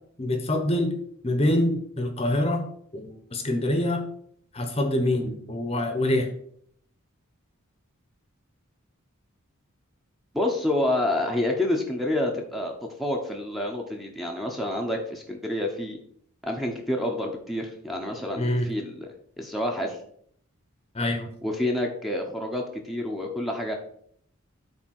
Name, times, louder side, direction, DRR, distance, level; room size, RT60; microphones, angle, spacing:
voice 1, 0.2-1.0 1.2-2.6 2.9-4.1 4.5-6.3 18.4-18.7 20.9-21.3, left 1 dB, 30° left, 6 dB, 0.9 m, -25 dB
voice 2, 10.3-16.0 16.4-19.1 19.4-20.0 21.4-23.7, left 1 dB, ahead, 1 dB, 0.9 m, -28 dB
8.1 x 3.5 x 6.4 m, 0.63 s
head